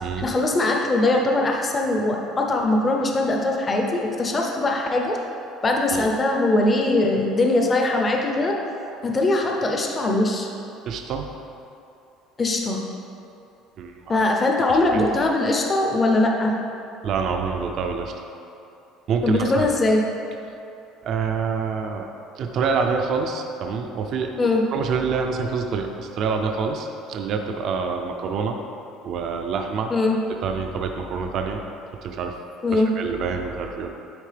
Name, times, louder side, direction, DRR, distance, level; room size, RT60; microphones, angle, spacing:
voice 1, 0.2-5.2 5.6-8.6 9.0-10.5 12.4-12.8 14.1-16.5 19.2-20.0 24.4-24.6 29.9-30.2 32.6-32.9, left 2 dB, 20° left, 1 dB, 0.5 m, -21 dB
voice 2, 10.9-11.3 13.8-14.2 14.9-15.1 17.0-18.1 19.1-19.7 21.0-22.1 22.4-28.6 29.0-29.9 30.4-31.6 32.0-32.3 32.7-33.9, right 5 dB, 45° right, 4 dB, 0.4 m, -26 dB
9.1 x 3.6 x 3.3 m, 2.8 s
cardioid pair, 155°, 0 cm